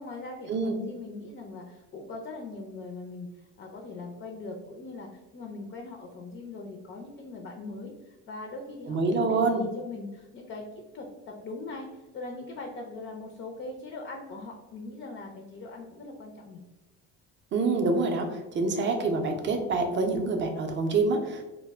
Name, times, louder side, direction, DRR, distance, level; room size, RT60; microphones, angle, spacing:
voice 1, 0.0-10.6 10.9-16.6, left 3 dB, 30° left, 2 dB, 0.4 m, -41 dB
voice 2, 8.9-9.6 17.5-21.4, right 3 dB, 30° right, 4 dB, 0.5 m, -26 dB
2.1 x 2.1 x 3.3 m, 1.1 s
supercardioid pair, 95°, 37 cm